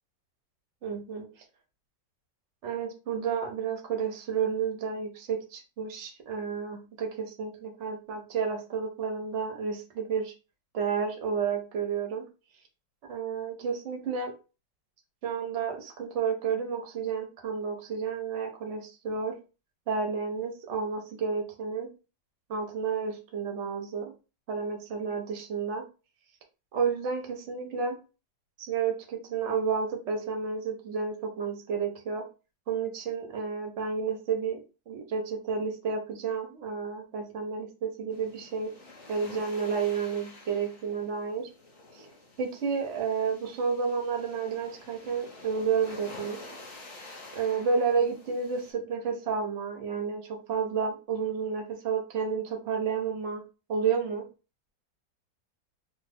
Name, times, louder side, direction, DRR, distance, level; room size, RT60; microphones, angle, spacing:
voice 1, 0.8-1.2 2.6-10.3 10.7-12.2 13.1-14.3 15.2-19.4 19.9-21.9 22.5-24.1 24.5-25.8 26.7-28.0 28.6-32.2 32.7-34.6 34.9-38.7 39.1-41.5 41.9-42.0 42.4-46.4 47.3-53.4 53.7-54.2, right 6 dB, 65° right, 3 dB, 0.7 m, -31 dB
sound 1, 38.1-48.7, left 2 dB, 50° left, 0.9 m, -49 dB
3.1 x 2.2 x 3.4 m, 0.32 s
omnidirectional pair, 2.1 m